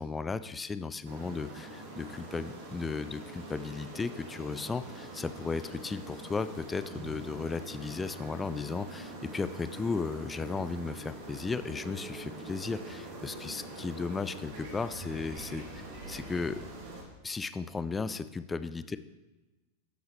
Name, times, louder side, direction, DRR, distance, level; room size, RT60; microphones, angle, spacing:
voice 1, 0.0-16.6 17.2-19.0, left 4 dB, 15° left, 13 dB, 0.4 m, -35 dB
sound 1, 1.0-17.0, right 1 dB, 50° right, 2.1 m, -44 dB
12.5 x 8.0 x 3.2 m, 1.1 s
figure-of-eight pair, 90°, 0 cm